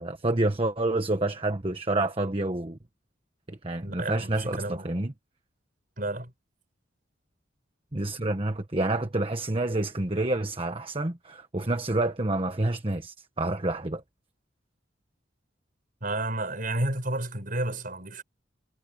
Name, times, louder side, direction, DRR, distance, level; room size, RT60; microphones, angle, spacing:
voice 1, 0.0-2.8 3.5-5.1 7.9-14.0, right 2 dB, 30° right, 1.3 m, -28 dB
voice 2, 3.8-4.8 6.0-6.3 16.0-18.2, right 1 dB, 45° right, 7.1 m, -31 dB
head